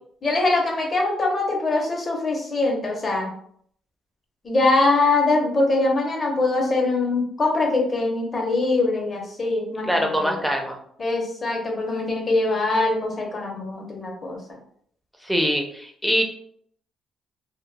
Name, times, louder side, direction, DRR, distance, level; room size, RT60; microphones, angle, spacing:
voice 1, 0.2-3.3 4.4-10.5 11.0-14.6, left 2 dB, 40° left, 0 dB, 0.8 m, -23 dB
voice 2, 9.9-10.8 15.2-16.2, equal, ahead, 2 dB, 0.6 m, -23 dB
2.9 x 2.2 x 2.2 m, 0.64 s
cardioid pair, 90°, 0 cm